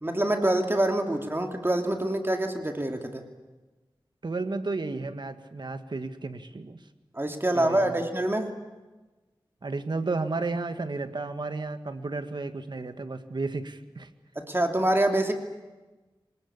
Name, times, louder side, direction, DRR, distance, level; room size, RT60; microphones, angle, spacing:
voice 1, 0.0-3.2 7.1-8.5 14.4-15.3, right 1 dB, 25° right, 4 dB, 2.7 m, -25 dB
voice 2, 4.2-6.8 7.5-8.0 9.6-14.1, right 3 dB, 60° right, 9 dB, 1.8 m, -33 dB
24.5 x 20.5 x 8.7 m, 1.2 s
wide cardioid pair, 65°, 9 cm